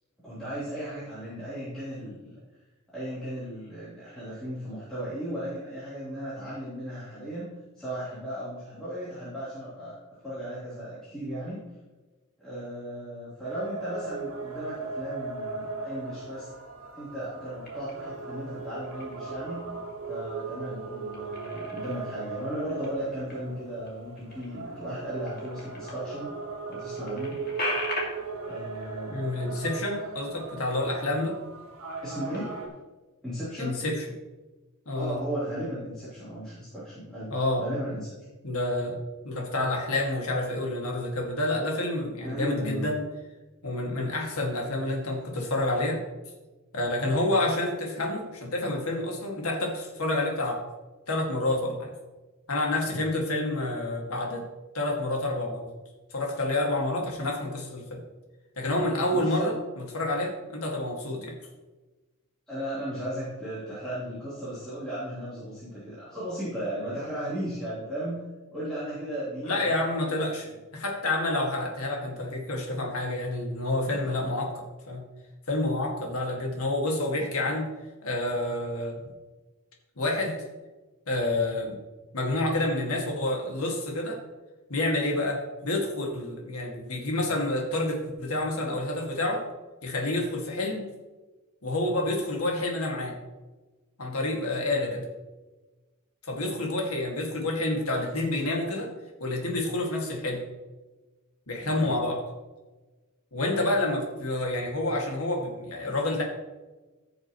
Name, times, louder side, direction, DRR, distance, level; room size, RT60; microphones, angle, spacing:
voice 1, 0.2-2.4 2.9-7.5 7.7-10.0 10.2-11.6 12.4-16.5 16.9-19.7 20.1-26.4 26.7-27.4 28.4-29.7 32.0-32.5 33.2-33.8 35.0-37.3 37.6-38.1 42.2-42.9 52.9-53.0 59.1-59.5 62.5-68.2 68.5-70.1 73.8-74.2 94.8-94.9 101.6-101.9, right 1 dB, 5° left, -13 dB, 3.5 m, -36 dB
sound 1, 13.4-32.7, right 4 dB, 70° right, 1.9 m, -38 dB
sound 2, 17.6-18.3 18.7-19.4 19.8-20.6 20.8-26.1 26.4-26.5 26.7-30.7 31.0-31.3 31.7-32.7, left 2 dB, 45° left, 2.3 m, -40 dB
voice 2, 29.1-31.4 33.6-34.0 34.9-35.2 37.3-37.6 38.4-39.0 39.2-43.0 43.6-46.0 46.7-50.6 51.1-51.9 52.5-54.4 54.7-55.7 56.1-58.0 58.6-59.5 59.9-61.3 69.4-75.0 75.5-77.6 78.0-79.1 80.0-80.4 81.1-81.8 82.1-84.2 84.7-89.4 89.8-90.8 91.6-93.2 94.0-95.0 96.3-98.9 99.2-100.4 101.5-102.2 103.3-106.2, left 2 dB, 75° left, 0 dB, 2.1 m, -28 dB
16.0 x 6.5 x 3.1 m, 1.2 s
head